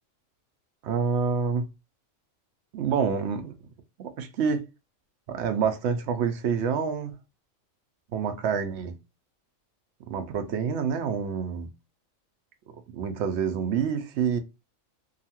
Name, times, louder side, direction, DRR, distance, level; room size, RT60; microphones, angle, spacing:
voice 1, 0.8-1.7 2.7-3.5 4.0-4.6 5.3-7.1 8.1-8.9 10.1-11.7 12.9-14.4, right 6 dB, 65° right, 0.8 m, -27 dB
2.8 x 2.4 x 2.8 m
omnidirectional pair, 1.4 m